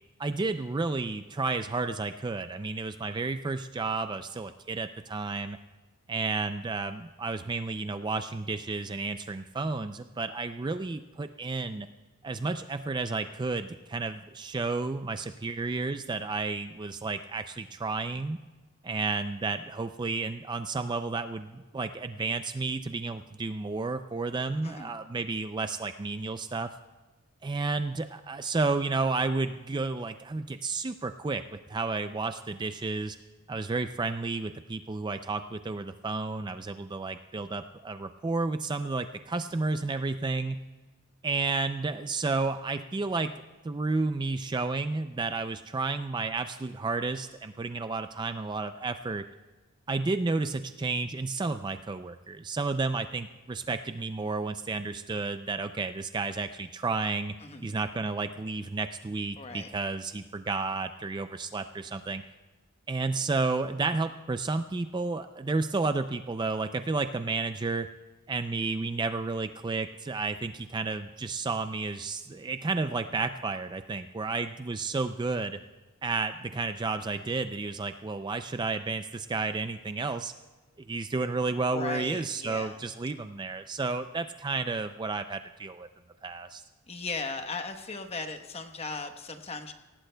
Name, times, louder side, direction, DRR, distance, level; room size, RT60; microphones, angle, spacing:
voice 1, 0.2-5.6 6.1-11.9 12.2-18.4 18.8-26.7 27.4-33.2 33.5-40.6 41.2-43.3 43.6-49.3 49.9-57.3 57.6-62.2 62.9-67.9 68.3-75.6 76.0-80.3 80.9-85.9 86.2-86.6, right 3 dB, 20° right, 9 dB, 0.3 m, -31 dB
voice 2, 57.4-57.8 59.4-59.7 81.7-82.8 86.9-89.7, left 3 dB, 30° left, 6 dB, 1.0 m, -37 dB
23.5 x 18.0 x 2.2 m, 1.2 s
head